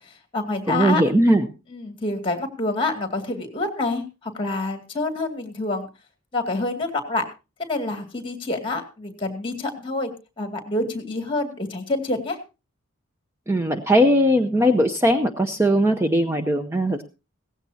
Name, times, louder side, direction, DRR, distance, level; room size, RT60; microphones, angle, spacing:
voice 1, 0.0-1.0 1.7-5.9 6.3-7.2 7.6-10.1 10.4-12.4, left 2 dB, 25° left, 6 dB, 2.3 m, -27 dB
voice 2, 0.7-1.5 13.5-17.0, equal, 10° right, 7 dB, 0.7 m, -19 dB
17.0 x 15.5 x 2.8 m, 0.30 s
head